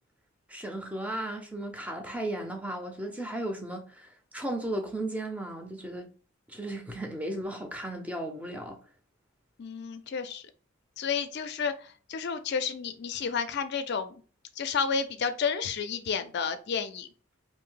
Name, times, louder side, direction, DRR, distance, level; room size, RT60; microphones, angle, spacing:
voice 1, 0.5-6.1 6.5-8.8, right 1 dB, 5° right, 0.5 m, -35 dB
voice 2, 9.6-10.4 11.0-14.2 14.6-17.1, left 6 dB, 50° left, 0.4 m, -31 dB
2.7 x 2.6 x 3.7 m
head